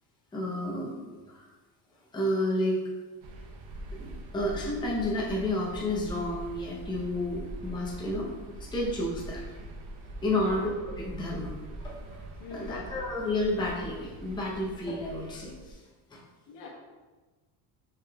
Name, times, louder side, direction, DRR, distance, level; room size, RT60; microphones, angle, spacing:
voice 1, 0.3-1.0 1.3-1.5 2.1-2.8 4.0-8.3 8.6-9.4 10.2-11.5 11.8-15.8 16.1-16.2, left 1 dB, 10° left, -4 dB, 0.7 m, -31 dB
sound 1, 3.2-15.7, right 1 dB, 65° right, 0.7 m, -43 dB
voice 2, 12.4-12.9 16.5-16.7, left 4 dB, 75° left, -2 dB, 1.3 m, -44 dB
6.0 x 3.6 x 2.3 m, 1.3 s
cardioid pair, 145°, 41 cm